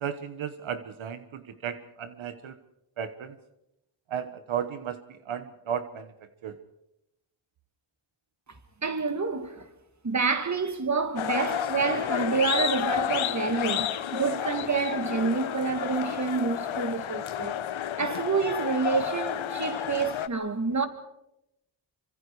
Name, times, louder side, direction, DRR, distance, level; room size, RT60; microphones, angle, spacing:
voice 1, 0.0-2.5 3.0-3.4 4.1-6.1 6.4-6.6, right 8 dB, 90° right, 1.3 m, -34 dB
voice 2, 8.8-9.7 10.0-17.6 18.0-20.9, right 4 dB, 35° right, 2.5 m, -28 dB
sound 1, 11.2-20.3, left 10 dB, 85° left, 1.0 m, -31 dB
27.0 x 25.0 x 4.9 m
wide cardioid pair, 90°, 46 cm